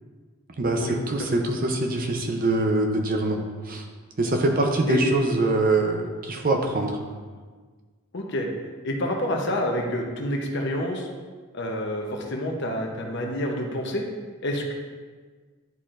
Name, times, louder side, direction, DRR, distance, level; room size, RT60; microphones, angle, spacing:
voice 1, 0.6-3.4 3.6-3.8 4.2-7.0, right 2 dB, 40° right, 3 dB, 0.6 m, -24 dB
voice 2, 8.1-8.5 8.8-11.1 11.5-14.0 14.4-14.7, left 1 dB, 50° left, 1 dB, 0.8 m, -28 dB
10.5 x 4.3 x 2.5 m, 1.5 s
head